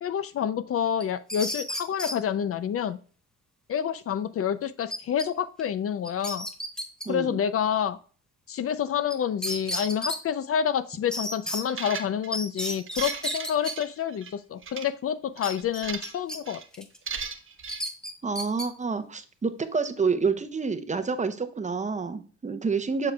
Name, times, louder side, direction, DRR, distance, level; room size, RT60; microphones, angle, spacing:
voice 1, 0.0-3.0 3.7-6.5 7.1-8.0 8.5-16.9, left 8 dB, 50° left, 14 dB, 0.5 m, -28 dB
sound 1, 1.0-2.2 4.9-5.3 5.6-5.7 6.1-7.1 9.1-9.2 9.4-10.2 11.1-11.6 12.3-13.7 15.4-16.4 16.7-17.0 17.7-18.7, equal, ahead, 0.9 m, -32 dB
voice 2, 7.1-7.4 18.2-23.1, right 5 dB, 25° right, 10 dB, 0.7 m, -28 dB
sound 2, 11.7-12.4 12.8-14.3 14.6-14.9 15.4-16.2 16.5-16.7 17.1-17.8, right 6 dB, 45° right, 1.1 m, -36 dB
7.2 x 6.6 x 2.3 m, 0.40 s
cardioid pair, 90°, 30 cm